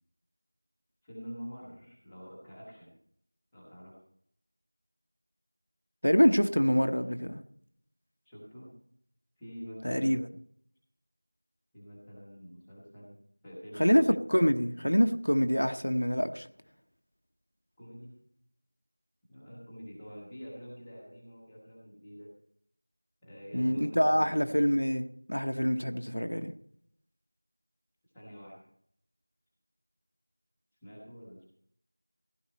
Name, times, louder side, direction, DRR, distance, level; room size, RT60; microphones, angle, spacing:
voice 1, 1.0-2.9 3.5-4.0 8.2-8.8 9.4-10.2 11.7-13.2 13.4-14.2 17.8-18.2 19.3-22.3 23.2-24.4 28.1-28.6 30.8-31.5, equal, ahead, 0.8 m, -46 dB
voice 2, 6.0-7.4 9.8-10.3 13.8-16.5 23.5-26.5, equal, 55° left, 0.9 m, -26 dB
15.5 x 11.0 x 4.2 m
figure-of-eight pair, 180°, 0 cm